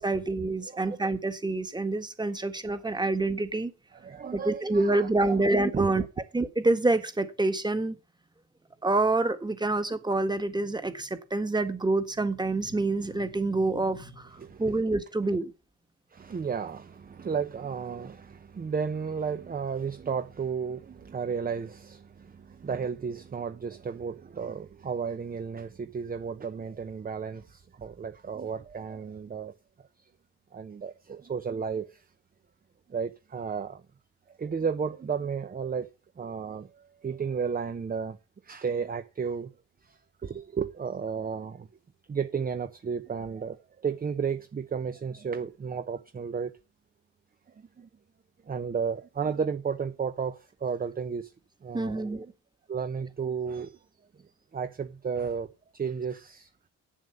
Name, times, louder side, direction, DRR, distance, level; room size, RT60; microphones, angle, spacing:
voice 1, 0.0-3.7 4.3-6.0 6.3-8.0 8.8-15.5 51.7-52.3, right 2 dB, 15° right, 1.7 m, -27 dB
voice 2, 0.6-1.0 3.9-5.4 5.7-6.1 14.3-14.8 15.2-15.4 16.1-29.5 30.0-30.1 30.5-32.0 32.9-33.8 34.4-35.9 36.2-38.2 38.4-39.5 39.8-41.7 42.1-46.5 47.6-47.9 48.5-51.3 51.6-52.3 52.7-53.8 54.5-56.5, right 6 dB, 30° right, 0.8 m, -33 dB
8.5 x 7.4 x 6.7 m
cardioid pair, 90°, 30 cm